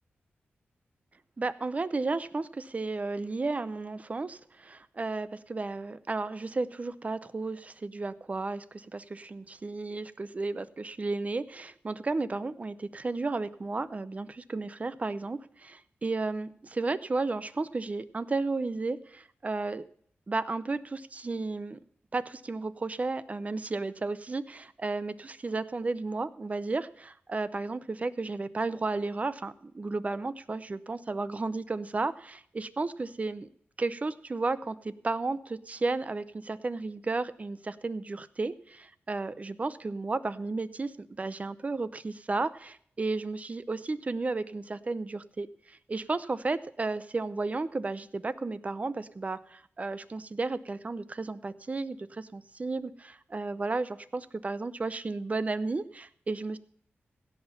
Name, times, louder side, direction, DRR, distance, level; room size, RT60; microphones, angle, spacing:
voice 1, 1.4-19.8 20.3-21.8 22.1-33.5 33.8-56.6, right 3 dB, 35° right, 15 dB, 0.6 m, -33 dB
16.5 x 5.8 x 5.6 m, 0.62 s
wide cardioid pair, 90°, 4 cm